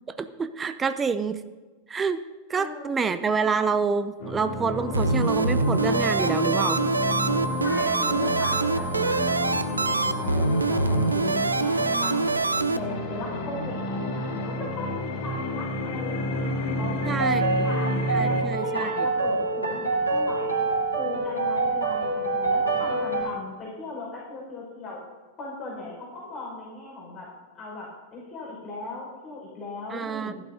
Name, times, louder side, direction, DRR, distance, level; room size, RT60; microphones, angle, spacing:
voice 1, 0.1-1.4 1.9-2.2 2.5-6.8 17.1-17.7 18.1-18.9 29.9-30.3, right 5 dB, 20° right, 11 dB, 0.6 m, -27 dB
voice 2, 2.6-3.2 7.6-12.3 12.8-17.9 18.2-20.6 21.0-25.0 25.4-27.3 27.5-30.3, left 3 dB, 25° left, -5 dB, 5.2 m, -38 dB
sound 1, 4.2-18.4, left 1 dB, 50° left, 2.0 m, -30 dB
sound 2, 4.9-12.8, right 3 dB, 80° right, 0.5 m, -25 dB
sound 3, 17.0-23.2, right 3 dB, 85° left, 2.7 m, -26 dB
15.5 x 11.5 x 3.9 m, 1.3 s
figure-of-eight pair, 90°, 0 cm